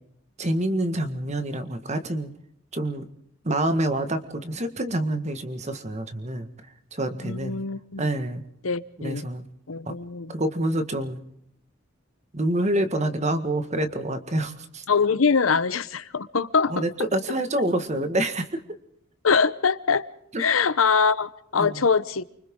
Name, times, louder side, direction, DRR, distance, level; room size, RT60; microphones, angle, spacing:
voice 1, 0.4-2.3 2.7-3.0 3.4-6.5 6.9-7.6 8.0-8.4 9.0-9.4 9.8-10.0 10.3-11.2 12.3-14.8 16.7-18.6 20.3-20.4 21.6-21.8, right 1 dB, 35° right, 1.7 m, -27 dB
voice 2, 7.2-8.0 8.6-9.2 9.7-10.3 14.9-16.8 19.2-20.0 20.4-22.2, left 5 dB, 90° left, 0.9 m, -23 dB
29.0 x 25.0 x 3.8 m
head